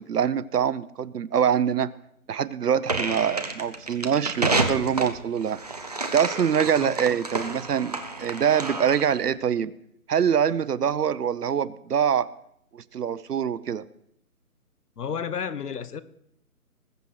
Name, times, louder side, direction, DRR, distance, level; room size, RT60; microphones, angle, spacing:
voice 1, 0.0-1.9 2.3-5.6 6.1-9.7 10.1-12.3 12.7-13.8, right 8 dB, 90° right, 0.8 m, -24 dB
sound 1, 2.9-9.2, right 3 dB, 25° right, 0.7 m, -29 dB
voice 2, 15.0-16.0, left 7 dB, 85° left, 1.1 m, -31 dB
20.5 x 7.6 x 4.7 m
hypercardioid pair, 170°, 45 cm